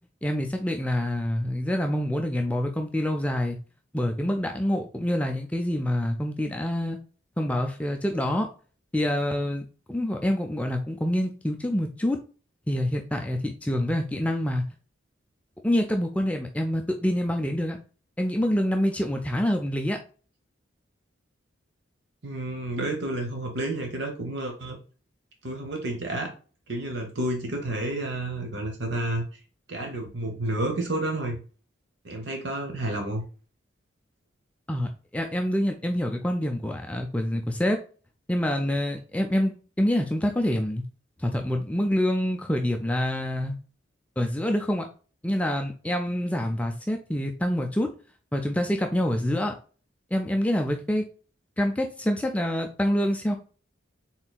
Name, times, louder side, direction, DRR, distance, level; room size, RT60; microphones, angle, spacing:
voice 1, 0.2-3.6 3.9-7.0 7.4-8.5 8.9-12.2 12.7-14.6 15.6-17.8 18.2-20.0 34.7-37.8 38.3-40.8 41.2-43.6 44.2-44.9 45.2-47.9 48.3-49.5 50.1-51.0 51.6-53.4, left 1 dB, 5° left, 3 dB, 0.3 m, -26 dB
voice 2, 22.2-24.8 25.4-26.3 26.7-29.2 29.7-31.4 32.0-33.2, right 1 dB, 60° right, 3 dB, 0.9 m, -30 dB
4.2 x 3.8 x 2.2 m, 0.37 s
head